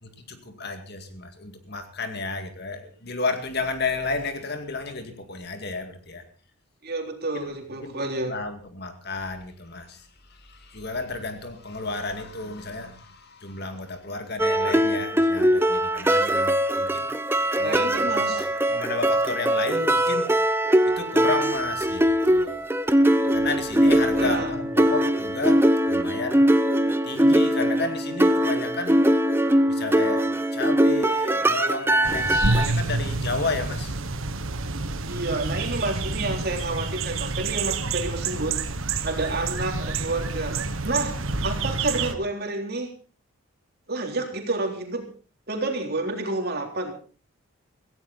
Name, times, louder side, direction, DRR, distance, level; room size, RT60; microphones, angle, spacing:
voice 1, 0.0-6.2 7.3-7.5 7.8-8.0 8.3-17.1 17.6-18.4 18.7-20.3 20.8-22.7 23.3-26.5 27.0-29.0 29.7-30.2 30.5-34.0 40.9-41.5, left 3 dB, 50° left, 7 dB, 2.2 m, -32 dB
voice 2, 6.8-8.4 17.6-18.4 24.2-24.5 35.1-38.6 39.0-40.6 40.8-41.2 41.4-42.9 43.9-45.1 45.5-46.9, right 2 dB, 45° right, 3 dB, 3.6 m, -29 dB
sound 1, 14.4-32.7, equal, 10° right, 0.7 m, -21 dB
sound 2, 32.0-42.1, right 3 dB, 65° right, 1.4 m, -28 dB
17.0 x 16.0 x 4.2 m, 0.38 s
head